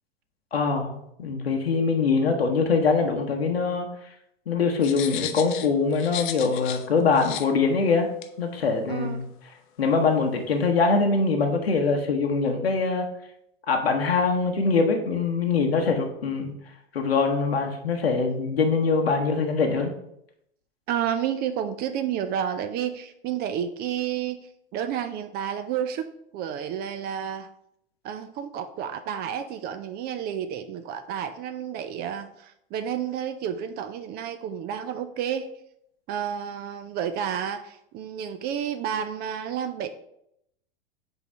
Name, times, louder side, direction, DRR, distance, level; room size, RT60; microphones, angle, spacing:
voice 1, 0.5-3.9 4.5-8.1 8.4-9.2 9.8-13.1 13.7-16.5 16.9-19.9, left 4 dB, 80° left, 3 dB, 0.9 m, -23 dB
sound 1, 4.8-6.9 7.2-7.5 8.2-8.3, left 11 dB, 55° left, 0.7 m, -34 dB
voice 2, 8.9-9.2 20.9-24.4 24.7-27.5 28.0-35.5 36.1-39.9, right 9 dB, 30° right, 10 dB, 0.5 m, -30 dB
5.3 x 4.0 x 5.4 m, 0.77 s
figure-of-eight pair, 90°, 30 cm